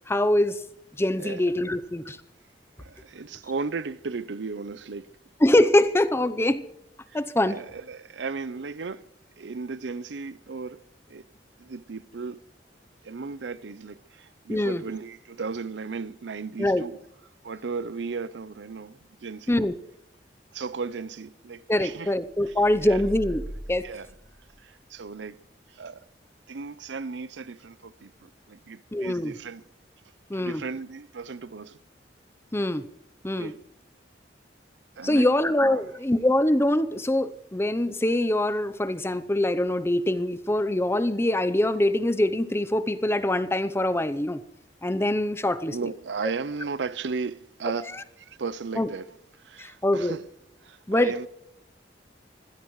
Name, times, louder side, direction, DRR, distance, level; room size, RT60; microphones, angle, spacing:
voice 1, 0.1-0.6 1.0-2.2 5.4-6.6 7.1-7.6 14.5-14.8 16.6-16.8 19.5-19.7 21.7-23.9 28.9-29.3 30.3-30.6 32.5-32.9 33.2-33.5 35.0-44.4 44.8-45.8 48.8-48.9 49.6-50.1 50.9-51.1, left 1 dB, 15° left, 0.7 m, -24 dB
voice 2, 2.8-5.1 7.1-9.1 9.4-10.8 11.1-11.3 11.6-12.4 13.0-17.0 17.4-19.6 20.5-22.1 22.5-22.6 22.8-23.0 23.8-24.1 24.6-25.4 25.7-26.0 26.5-29.6 30.4-31.8 33.3-33.6 35.0-35.3 35.6-35.9 45.7-49.1 49.4-50.2 50.6-51.3, right 4 dB, 85° right, 0.6 m, -35 dB
sound 1, 22.3-25.0, equal, 20° right, 2.6 m, -40 dB
25.0 x 16.0 x 3.2 m
head